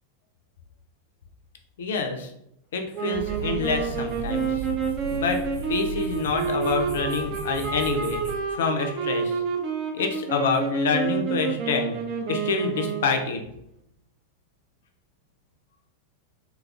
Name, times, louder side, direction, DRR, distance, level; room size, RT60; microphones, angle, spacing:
voice 1, 1.8-2.3 2.7-4.5 5.1-5.4 5.7-8.2 8.6-9.3 9.9-12.0 12.3-13.4, left 4 dB, 60° left, 4 dB, 0.4 m, -27 dB
sound 1, 2.9-13.3, right 5 dB, 40° right, 0.5 m, -29 dB
sound 2, 3.1-8.3, right 3 dB, 90° right, 0.9 m, -36 dB
3.2 x 2.3 x 2.4 m, 0.79 s
figure-of-eight pair, 90°, 0 cm